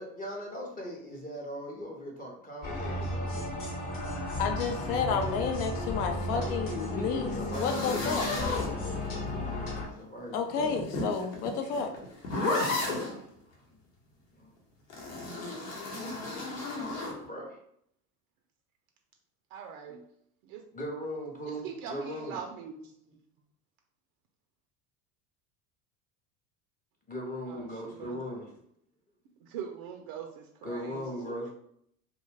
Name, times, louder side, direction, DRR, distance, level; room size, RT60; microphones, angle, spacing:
voice 1, 0.0-3.7 6.3-10.7 11.0-11.1 11.6-11.7 14.3-14.5 17.3-17.6 19.9-20.0 20.7-22.4 27.1-28.5 30.6-31.5, equal, 20° left, -2 dB, 0.6 m, -39 dB
sound 1, 2.6-9.9, left 1 dB, 40° left, 0.9 m, -34 dB
voice 2, 4.4-8.3 10.3-11.9, left 5 dB, 70° left, 5 dB, 0.6 m, -31 dB
sound 2, 7.5-9.3 10.5-13.2 14.9-17.2, left 2 dB, 85° left, 0.9 m, -33 dB
voice 3, 19.5-20.0 20.4-20.6 21.5-22.9 27.5-28.2 29.5-31.5, right 7 dB, 65° right, 3 dB, 0.5 m, -42 dB
2.5 x 2.2 x 3.2 m, 0.70 s
hypercardioid pair, 85°, 48 cm